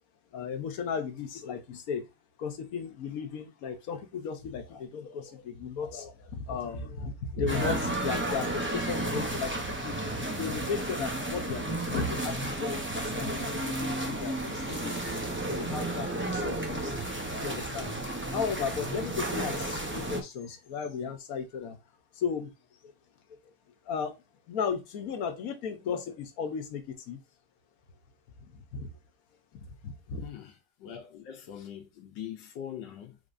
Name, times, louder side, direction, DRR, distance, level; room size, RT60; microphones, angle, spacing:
voice 1, 0.3-2.1 2.4-15.0 15.5-16.8 17.4-17.9 18.3-21.8 22.1-22.5 22.8-22.9 23.9-24.1 24.5-27.2 28.5-28.9 29.5-30.2, left 6 dB, 60° left, 1.2 m, -35 dB
sound 1, 7.5-20.2, right 1 dB, 20° right, 0.3 m, -32 dB
voice 2, 30.2-33.2, left 9 dB, 85° left, 1.4 m, -42 dB
5.2 x 4.0 x 2.6 m
omnidirectional pair, 1.9 m